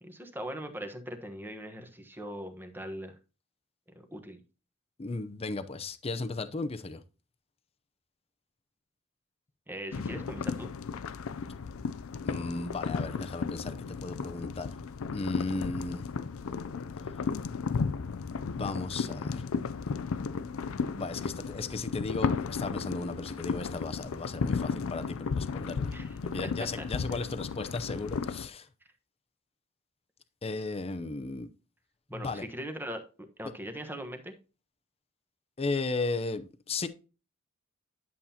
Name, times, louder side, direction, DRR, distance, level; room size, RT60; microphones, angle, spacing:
voice 1, 0.0-3.1 3.9-4.4 9.7-10.7 25.9-26.9 32.1-34.3, equal, 10° right, 1.1 m, -40 dB
voice 2, 5.0-7.0 12.2-14.8 15.1-16.1 18.3-19.4 20.9-25.9 26.3-28.7 30.4-31.5 32.1-32.4 35.6-36.9, left 3 dB, 30° left, 0.6 m, -35 dB
sound 1, 9.9-28.5, left 5 dB, 80° left, 0.5 m, -34 dB
11.0 x 7.3 x 2.8 m
head